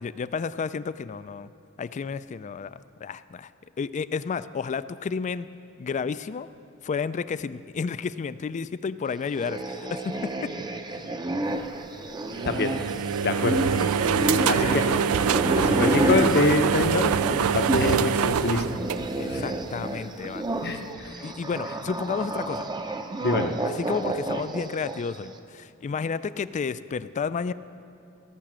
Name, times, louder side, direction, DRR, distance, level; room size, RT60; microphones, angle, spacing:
voice 1, 0.0-1.5 1.8-3.5 3.8-5.5 5.8-6.5 6.8-10.5 10.9-11.0 14.4-15.1 15.6-15.9 19.2-20.5 21.2-22.7 23.8-27.5, left 5 dB, 35° left, 15 dB, 0.3 m, -31 dB
sound 1, 9.3-18.1 18.4-25.2, right 1 dB, 20° right, 0.6 m, -30 dB
sound 2, 12.3-19.6, right 7 dB, 85° right, 0.4 m, -25 dB
voice 2, 13.2-13.7 14.5-14.9 15.5-18.6 19.3-19.4 20.6-21.2 23.2-23.5, left 3 dB, 50° left, 7 dB, 0.8 m, -25 dB
16.5 x 6.9 x 7.5 m, 2.7 s
head